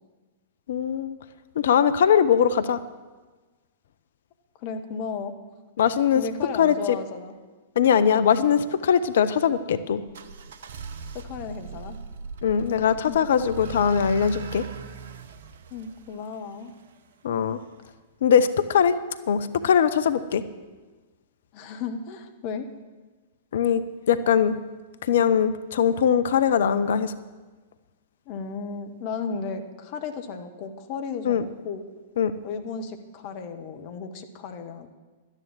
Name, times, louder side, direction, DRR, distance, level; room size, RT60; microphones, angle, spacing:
voice 1, 0.7-1.1 1.6-2.8 5.8-6.2 6.6-7.0 7.8-10.0 12.4-14.6 17.2-17.6 18.2-18.9 19.3-20.4 23.5-24.5 25.0-27.1 31.2-31.4 32.2-32.3, left 8 dB, 60° left, 13 dB, 0.6 m, -21 dB
voice 2, 4.6-5.4 6.1-7.3 11.1-12.0 12.9-13.2 15.7-16.8 21.5-22.7 28.3-31.8 32.4-34.9, left 5 dB, 45° left, 7 dB, 1.2 m, -34 dB
sound 1, 10.1-17.0, right 6 dB, 60° right, 0.9 m, -40 dB
12.0 x 9.9 x 7.6 m, 1.3 s
figure-of-eight pair, 100°, 0 cm